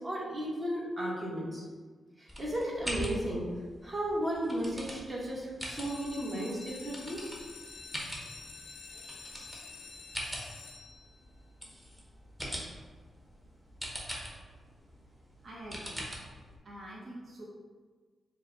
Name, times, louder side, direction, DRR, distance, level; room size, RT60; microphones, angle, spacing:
voice 1, 0.0-1.6 2.4-3.5 3.8-7.2, right 1 dB, 30° right, -5 dB, 1.4 m, -34 dB
sound 1, 2.3-16.6, equal, 10° right, 1.1 m, -43 dB
sound 2, 5.6-11.3 11.9-12.4 12.8-12.9 13.2-13.3 13.7-13.8, left 4 dB, 85° left, 0.5 m, -48 dB
voice 2, 15.4-16.1 16.6-17.5, right 1 dB, 50° right, -5 dB, 0.9 m, -45 dB
4.7 x 2.3 x 4.0 m, 1.4 s
cardioid pair, 65°, 0 cm